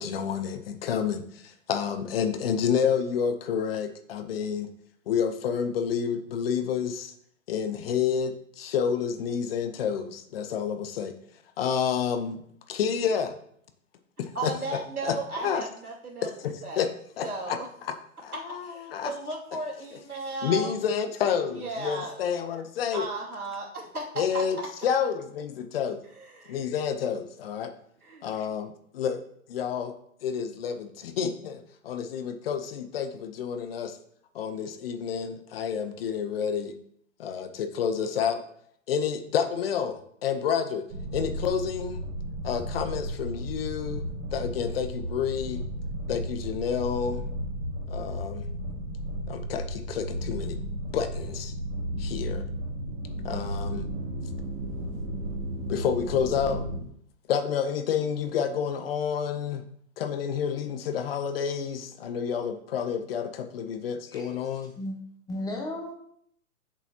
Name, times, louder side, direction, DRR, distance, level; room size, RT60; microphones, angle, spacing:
voice 1, 0.0-4.7 5.1-7.1 7.5-11.1 11.6-12.4 12.7-13.3 14.2-14.5 15.0-15.2 15.4-15.6 16.2-16.9 17.2-17.6 18.2-19.1 20.4-23.1 24.2-24.6 24.8-26.0 26.5-27.7 28.2-29.2 29.5-29.9 30.2-34.0 34.3-36.8 37.2-38.4 38.9-40.9 41.1-42.1 42.4-44.0 44.3-45.6 46.1-47.2 47.9-48.5 49.3-50.6 50.9-51.5 52.0-52.4 53.2-53.9 55.7-56.7 57.3-59.6 60.0-64.7, left 7 dB, 40° left, 9 dB, 0.8 m, -29 dB
voice 2, 14.3-16.3 16.6-16.9 17.2-17.7 18.6-20.7 21.5-22.2 22.9-24.4 26.1-26.6 28.0-28.3, right 3 dB, 90° right, -3 dB, 2.7 m, -35 dB
sound 1, 40.9-56.8, right 1 dB, 35° right, 2.1 m, -34 dB
voice 3, 65.3-65.9, left 1 dB, 10° left, 1 dB, 1.2 m, -34 dB
8.1 x 7.0 x 2.9 m, 0.67 s
figure-of-eight pair, 115°, 43 cm